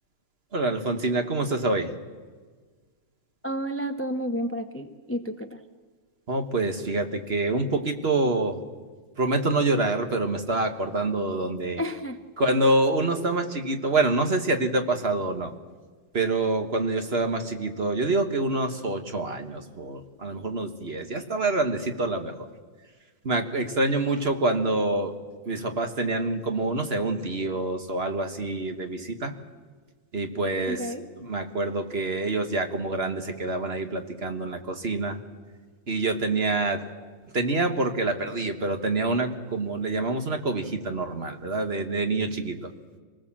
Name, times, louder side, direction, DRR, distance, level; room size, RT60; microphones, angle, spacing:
voice 1, 0.5-1.9 6.3-8.6 9.2-11.8 12.4-15.5 16.1-22.3 23.2-25.1 25.4-29.3 30.1-35.2 35.9-36.8 37.3-42.7, right 2 dB, 40° right, 6 dB, 1.6 m, -26 dB
voice 2, 3.4-5.6 11.8-12.2 30.7-31.1, equal, 10° left, 8 dB, 0.6 m, -31 dB
26.5 x 19.0 x 7.4 m, 1.5 s
omnidirectional pair, 1.8 m